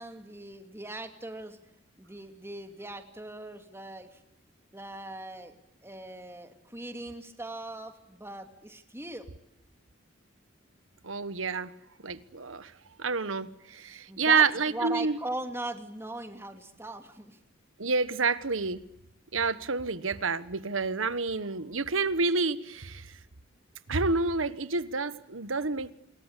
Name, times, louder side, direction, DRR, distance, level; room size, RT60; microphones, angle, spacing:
voice 1, 0.0-1.6 2.0-4.2 4.7-5.5 5.8-9.3 14.1-17.4, right 2 dB, 15° right, 2.8 m, -39 dB
voice 2, 11.0-11.7 12.0-12.7 13.0-15.2 17.8-18.8 19.3-23.1 23.9-25.9, right 4 dB, 80° right, 1.4 m, -28 dB
28.0 x 22.0 x 8.4 m
head